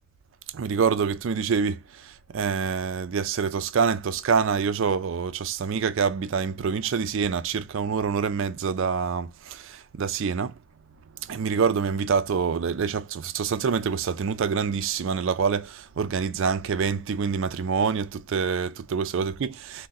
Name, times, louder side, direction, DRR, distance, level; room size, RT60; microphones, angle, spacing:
voice 1, 0.5-1.8 2.3-10.5 11.3-19.9, right 6 dB, 60° right, 0.4 m, -26 dB
2.6 x 2.1 x 3.9 m
head